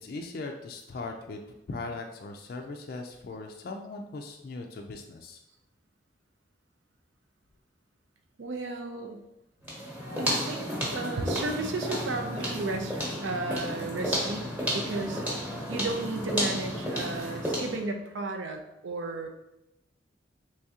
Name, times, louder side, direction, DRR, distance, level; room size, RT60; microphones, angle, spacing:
voice 1, 0.0-1.4 1.7-5.4, left 3 dB, 50° left, 3 dB, 0.3 m, -39 dB
voice 2, 8.4-9.2 10.1-10.6 10.9-14.4 14.7-19.3, right 3 dB, 85° right, 5 dB, 0.5 m, -34 dB
sound 1, 9.6-17.9, equal, 5° right, 1.0 m, -32 dB
3.5 x 3.1 x 2.8 m, 0.90 s
head